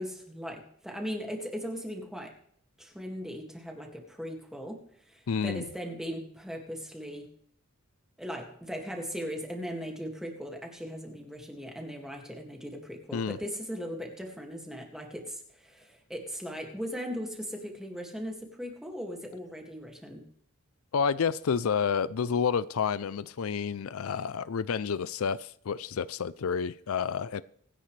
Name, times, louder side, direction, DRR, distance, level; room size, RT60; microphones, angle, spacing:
voice 1, 0.0-2.3 2.8-7.3 8.2-20.3, equal, ahead, 2.1 m, -38 dB
voice 2, 5.3-5.6 13.1-13.4 20.9-27.4, left 6 dB, 75° left, 0.5 m, -29 dB
24.5 x 10.0 x 3.3 m
head